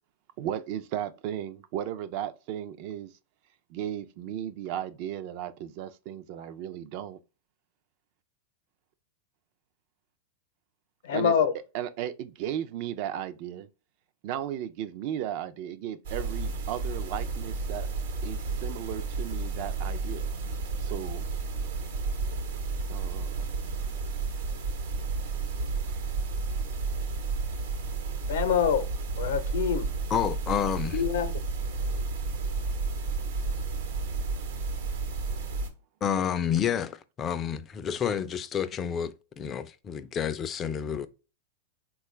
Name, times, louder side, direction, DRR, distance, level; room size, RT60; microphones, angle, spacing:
voice 1, 0.4-3.2 3.7-7.2 11.1-11.3 11.7-13.7 14.2-17.9 18.2-20.3 20.8-21.3 22.9-23.5, right 10 dB, 55° right, 0.4 m, -35 dB
voice 2, 11.0-11.5 28.3-28.9 29.2-29.9 30.9-31.3, left 8 dB, 75° left, 0.7 m, -25 dB
sound 1, 16.0-35.7, right 4 dB, 80° right, 0.9 m, -32 dB
voice 3, 30.1-31.0 36.0-41.1, left 8 dB, 25° left, 0.3 m, -29 dB
3.6 x 2.3 x 3.0 m
hypercardioid pair, 120°, 0 cm